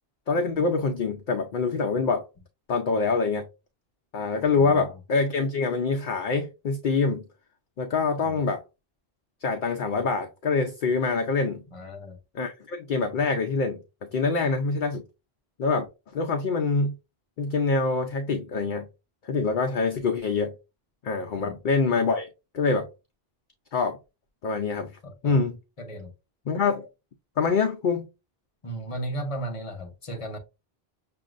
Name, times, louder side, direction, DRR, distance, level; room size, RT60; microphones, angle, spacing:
voice 1, 0.3-2.3 2.7-3.5 4.1-7.2 7.8-8.6 9.4-11.6 12.3-13.8 14.1-15.0 15.6-15.9 16.1-16.9 17.4-18.8 19.2-20.5 21.0-22.3 22.5-22.9 23.7-24.0 24.4-24.9 25.2-25.6 26.5-26.9 27.4-28.1, left 4 dB, 55° left, 0.7 m, -25 dB
voice 2, 4.5-4.9 8.2-8.4 11.7-12.2 21.3-21.6 25.0-25.4 25.8-26.1 28.6-30.4, right 1 dB, 35° left, 0.9 m, -35 dB
6.2 x 2.6 x 2.5 m
omnidirectional pair, 1.0 m